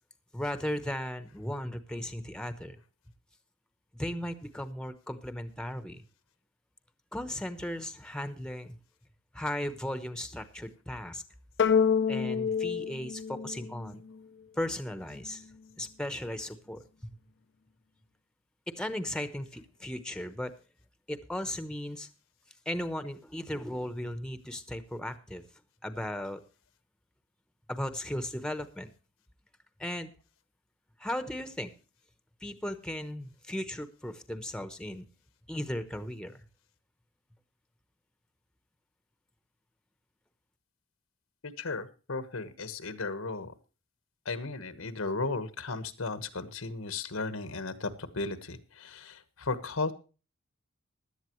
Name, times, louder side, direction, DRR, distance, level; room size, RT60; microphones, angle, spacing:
voice 1, 0.3-2.8 3.9-6.0 7.1-8.8 9.3-11.2 12.1-14.0 14.6-15.4 15.8-16.8 18.7-20.5 21.1-22.1 22.7-25.4 25.8-26.4 27.7-28.9 29.8-30.1 31.0-31.7 32.4-35.1 35.5-36.4, left 1 dB, 5° left, 11 dB, 0.9 m, -36 dB
sound 1, 11.6-14.2, left 6 dB, 55° left, 0.6 m, -27 dB
voice 2, 41.4-43.5 44.2-49.9, left 3 dB, 80° left, 12 dB, 1.3 m, -35 dB
16.5 x 11.5 x 3.1 m, 0.35 s
head